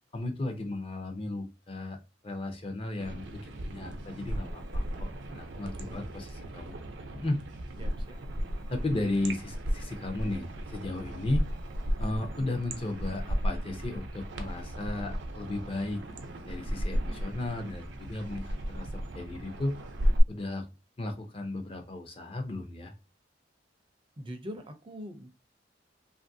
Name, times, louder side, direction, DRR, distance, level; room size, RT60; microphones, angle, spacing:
voice 1, 0.1-2.0 2.2-6.8 7.1-7.4 8.7-11.4 12.0-16.0 16.5-18.9 19.1-19.8 20.3-20.7 21.0-22.9, left 2 dB, 30° left, 5 dB, 0.6 m, -35 dB
sound 1, 3.0-20.2, equal, 90° right, 0.6 m, -35 dB
voice 2, 7.8-8.2 24.2-25.3, equal, 30° right, 6 dB, 0.4 m, -42 dB
3.0 x 2.5 x 2.6 m, 0.26 s
head